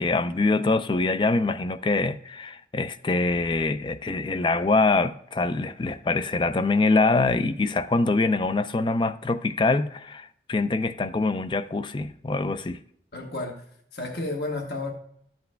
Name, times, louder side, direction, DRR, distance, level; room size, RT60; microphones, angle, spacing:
voice 1, 0.0-12.8, left 3 dB, 25° left, 0.4 m, -24 dB
voice 2, 13.1-13.6 13.9-14.9, left 2 dB, 65° left, 1.3 m, -31 dB
12.5 x 8.0 x 2.2 m
head